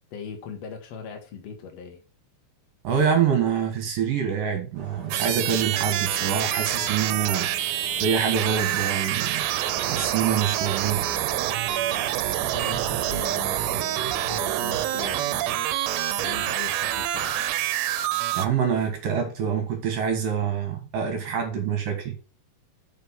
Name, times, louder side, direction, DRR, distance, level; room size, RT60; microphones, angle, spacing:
voice 1, 0.1-2.0 12.3-14.0 14.3-15.6 16.1-17.3, left 6 dB, 80° left, 1.4 m, -40 dB
voice 2, 2.8-7.5 8.0-9.5 9.8-11.0 18.3-22.2, right 7 dB, 60° right, 2.8 m, -25 dB
sound 1, 4.7-15.1, right 3 dB, 30° right, 2.0 m, -42 dB
sound 2, 5.1-18.5, right 13 dB, 80° right, 2.8 m, -27 dB
8.1 x 6.5 x 5.8 m
omnidirectional pair, 5.1 m